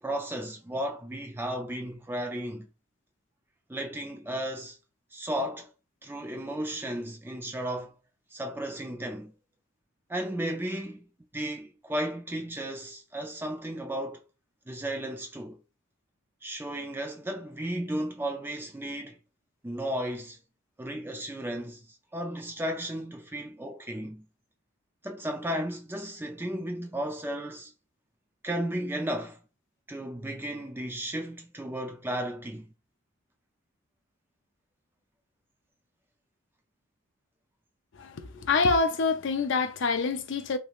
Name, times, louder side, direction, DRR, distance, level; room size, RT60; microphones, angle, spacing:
voice 1, 0.0-2.7 3.7-4.8 5.1-5.7 6.0-7.9 8.3-9.3 10.1-11.1 11.3-14.2 14.7-15.6 16.4-19.2 19.6-20.4 20.8-21.8 22.1-24.2 25.0-27.7 28.4-29.4 29.9-32.7, right 1 dB, 10° right, 0.4 m, -34 dB
voice 2, 38.0-40.6, left 4 dB, 55° left, 0.5 m, -26 dB
3.3 x 3.0 x 2.4 m
head